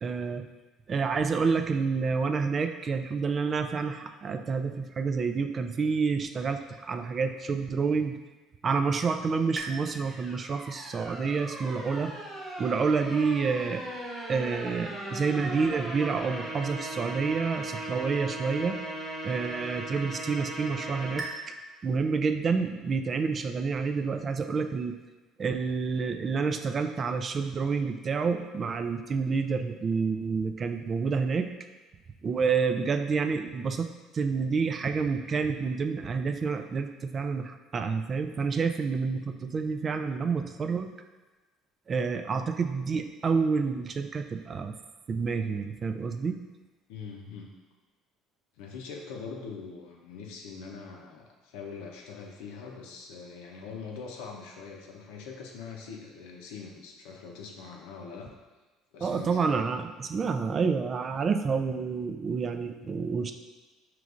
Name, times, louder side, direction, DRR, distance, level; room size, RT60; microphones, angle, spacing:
voice 1, 0.0-0.5 0.9-8.2 8.6-12.1 12.6-13.8 14.3-18.8 19.2-21.3 21.8-25.0 25.4-31.5 32.2-33.9 34.1-40.9 41.9-44.7 45.1-46.3 59.0-63.3, right 5 dB, 35° right, 7 dB, 0.3 m, -28 dB
sound 1, 9.6-21.3, right 1 dB, 15° right, 0.9 m, -38 dB
voice 2, 46.9-47.5 48.6-58.3 58.9-59.7, left 5 dB, 85° left, 0 dB, 0.6 m, -43 dB
4.9 x 3.0 x 2.5 m, 1.2 s
supercardioid pair, 95°, 0 cm